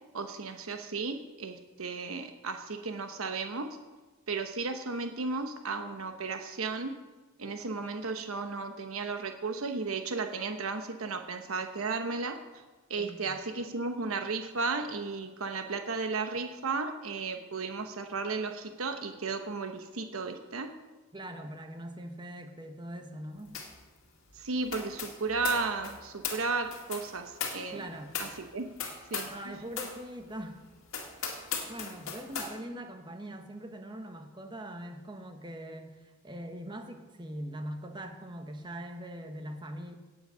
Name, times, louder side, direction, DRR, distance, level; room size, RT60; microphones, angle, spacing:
voice 1, 0.1-3.7 4.3-6.9 7.4-12.4 12.9-20.7 24.3-27.8 28.2-28.7 29.1-29.6, right 4 dB, 85° right, 7 dB, 1.0 m, -34 dB
voice 2, 13.0-13.4 21.1-23.6 27.7-28.2 29.3-30.6 31.1-31.3 31.7-39.9, right 1 dB, 20° right, 6 dB, 1.2 m, -42 dB
sound 1, 23.5-23.8 24.1-29.4 29.7-30.0 30.4-30.5 30.9-32.5, left 6 dB, 75° left, 2.2 m, -38 dB
17.5 x 7.9 x 5.6 m, 1.2 s
head